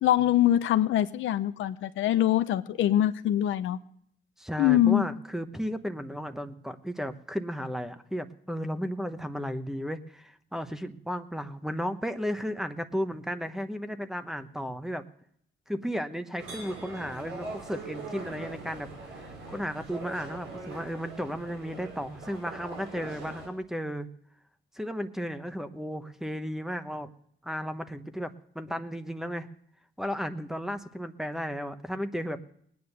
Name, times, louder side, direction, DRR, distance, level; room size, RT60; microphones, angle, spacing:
voice 1, 0.0-3.8 4.6-5.0, left 12 dB, 75° left, 12 dB, 0.7 m, -23 dB
voice 2, 4.4-15.0 15.7-24.1 24.7-27.1 27.4-29.5 30.0-32.4, equal, ahead, 10 dB, 1.0 m, -34 dB
sound 1, 16.4-23.5, right 3 dB, 85° right, 4.7 m, -42 dB
19.5 x 9.5 x 6.7 m, 0.67 s
cardioid pair, 90°, 20 cm